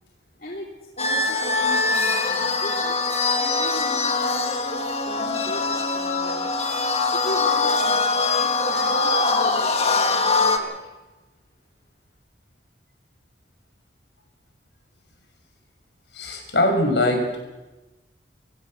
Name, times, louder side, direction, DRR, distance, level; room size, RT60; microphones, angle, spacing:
voice 1, 0.4-3.0 3.4-6.5 7.1-10.8, equal, 50° left, -3 dB, 2.9 m, -37 dB
sound 1, 1.0-10.6, left 3 dB, 35° left, 1.7 m, -22 dB
voice 2, 16.1-17.4, left 1 dB, 75° left, 3 dB, 5.9 m, -21 dB
26.5 x 15.5 x 6.4 m, 1.1 s
head